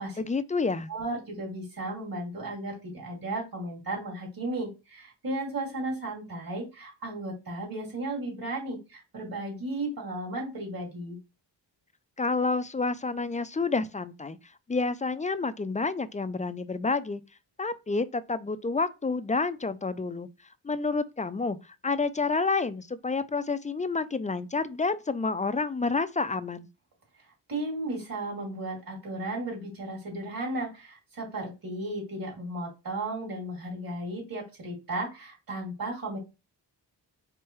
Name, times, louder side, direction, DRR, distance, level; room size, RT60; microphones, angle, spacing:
voice 1, 0.2-0.9 12.2-14.4 14.7-17.2 17.6-20.3 20.6-26.7, left 4 dB, 20° left, 0.4 m, -29 dB
voice 2, 0.9-11.2 27.5-36.2, right 2 dB, 50° right, 2.8 m, -35 dB
4.6 x 3.3 x 3.1 m
cardioid pair, 65°, 44 cm